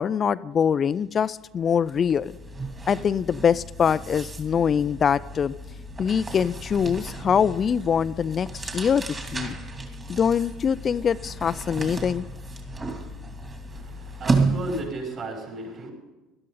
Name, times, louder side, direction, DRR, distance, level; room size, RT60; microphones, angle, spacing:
voice 1, 0.0-2.3 2.9-5.5 6.0-9.6 10.1-12.2, left 7 dB, 35° left, 15 dB, 0.4 m, -23 dB
sound 1, 1.1-1.3 1.6-15.0, right 3 dB, 25° right, 2.6 m, -33 dB
voice 2, 13.7-15.9, right 2 dB, 45° right, 0 dB, 6.1 m, -34 dB
18.5 x 13.0 x 3.9 m, 1.1 s
hypercardioid pair, 65°, 0 cm